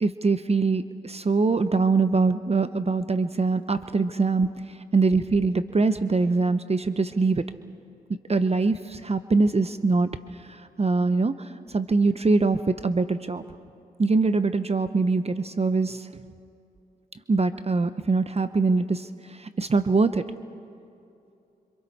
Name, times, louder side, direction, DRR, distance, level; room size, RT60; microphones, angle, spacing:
voice 1, 0.0-7.5 8.3-13.4 14.0-16.1 17.3-20.2, right 3 dB, 35° right, 11 dB, 1.0 m, -23 dB
29.0 x 26.0 x 4.3 m, 2.7 s
supercardioid pair, 40°, 18 cm